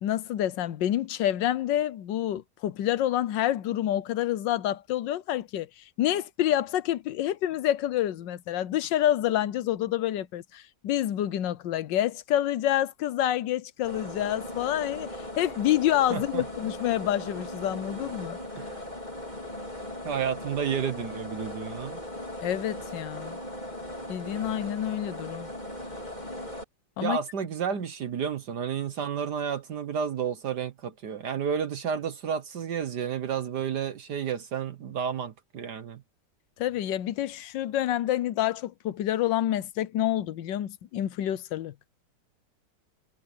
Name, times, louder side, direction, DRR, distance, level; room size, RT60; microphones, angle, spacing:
voice 1, 0.0-18.4 22.4-23.4 24.1-25.5 27.0-27.2 36.6-41.7, left 12 dB, 90° left, 1.5 m, -28 dB
sound 1, 13.8-26.6, left 1 dB, 25° left, 4.2 m, -38 dB
voice 2, 16.1-16.4 18.6-18.8 20.0-22.0 27.0-36.0, right 7 dB, 70° right, 1.7 m, -31 dB
omnidirectional pair, 1.9 m